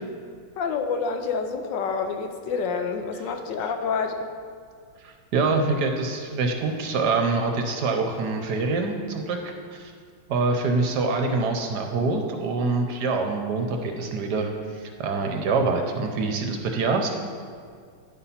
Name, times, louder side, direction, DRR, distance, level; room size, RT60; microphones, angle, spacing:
voice 1, 0.6-4.3, left 5 dB, 75° left, 6 dB, 1.2 m, -28 dB
voice 2, 5.0-9.9 10.3-14.5 14.8-17.1, right 3 dB, 65° right, 4 dB, 1.1 m, -25 dB
10.5 x 4.2 x 5.6 m, 2.1 s
omnidirectional pair, 2.1 m